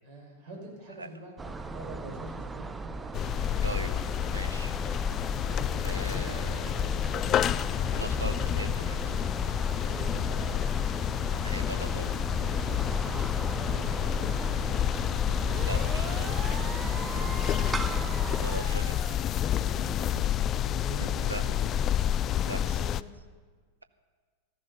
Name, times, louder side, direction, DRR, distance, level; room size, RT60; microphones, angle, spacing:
voice 1, 0.0-3.4 5.3-8.0 9.6-10.8 12.6-14.5 16.8-17.3 19.5-20.2 20.6-21.7 22.6-22.9, right 1 dB, 45° right, 0 dB, 5.9 m, -45 dB
sound 1, 1.4-18.6, right 3 dB, 15° right, 0.7 m, -38 dB
sound 2, 3.1-23.0, left 10 dB, 30° left, 0.4 m, -29 dB
voice 2, 4.3-4.8 5.8-6.7 7.3-7.4 7.9-9.2 11.4-12.1 15.6-16.3 18.4-19.0 21.0-21.4 22.4-22.6, right 3 dB, 80° right, 10 dB, 0.9 m, -39 dB
sound 3, 15.4-19.2, right 6 dB, 30° right, 1.3 m, -41 dB
15.0 x 14.0 x 5.7 m, 1.5 s
figure-of-eight pair, 90°, 0 cm